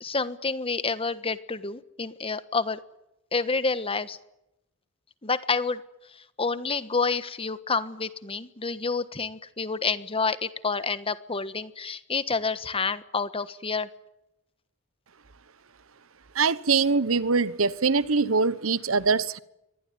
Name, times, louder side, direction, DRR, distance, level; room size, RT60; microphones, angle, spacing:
voice 1, 0.0-2.8 3.3-4.2 5.2-5.8 6.1-13.9, left 4 dB, 25° left, 1.3 m, -29 dB
voice 2, 16.3-19.4, right 4 dB, 85° right, 1.1 m, -23 dB
24.0 x 19.5 x 9.5 m
head